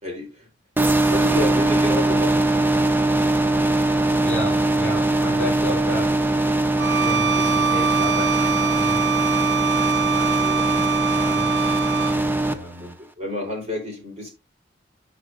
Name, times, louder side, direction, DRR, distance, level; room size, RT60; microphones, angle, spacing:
voice 1, 0.0-0.5 0.8-2.5 5.7-5.8 12.4-12.9 13.2-14.3, left 1 dB, 35° right, 3.8 m, -30 dB
sound 1, 0.8-12.5, right 2 dB, 10° right, 0.6 m, -21 dB
voice 2, 4.2-6.1 6.9-9.0 10.0-11.5 12.0-12.9, left 1 dB, 5° left, 3.2 m, -33 dB
Bowed string instrument, 6.8-12.2, right 7 dB, 80° right, 0.7 m, -24 dB
13.0 x 5.0 x 2.6 m
head